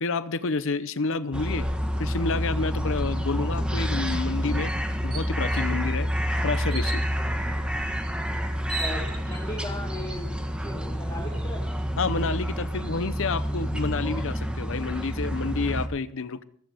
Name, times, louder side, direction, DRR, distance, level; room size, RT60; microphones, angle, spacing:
voice 1, 0.0-1.7 2.0-4.7 5.0-6.1 6.4-7.0 12.0-16.4, left 4 dB, 65° left, 0.8 m, -29 dB
sound 1, 1.3-15.9, equal, 5° right, 1.4 m, -28 dB
sound 2, 4.1-4.3 4.7-4.8 5.1-5.7 6.7-7.1 8.2-8.3 8.5-9.4, right 3 dB, 25° right, 2.9 m, -36 dB
voice 2, 8.7-11.6, left 1 dB, 20° left, 2.3 m, -38 dB
16.5 x 14.5 x 3.6 m
head